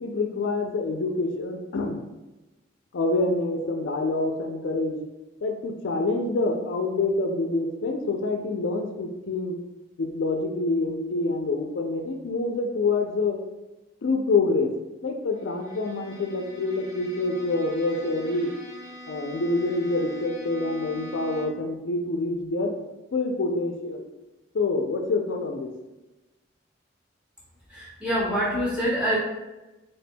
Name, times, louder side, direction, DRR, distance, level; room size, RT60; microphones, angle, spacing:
voice 1, 0.0-2.0 2.9-5.0 5.4-9.6 10.0-13.4 14.0-14.7 15.0-18.5 19.1-22.7 23.1-24.0 24.5-25.7, left 3 dB, 80° left, 3 dB, 0.5 m, -26 dB
Bowed string instrument, 15.3-21.8, equal, 20° right, 0.5 m, -43 dB
voice 2, 27.7-29.2, equal, 5° right, -8 dB, 1.3 m, -25 dB
4.2 x 3.4 x 2.2 m, 1.1 s
head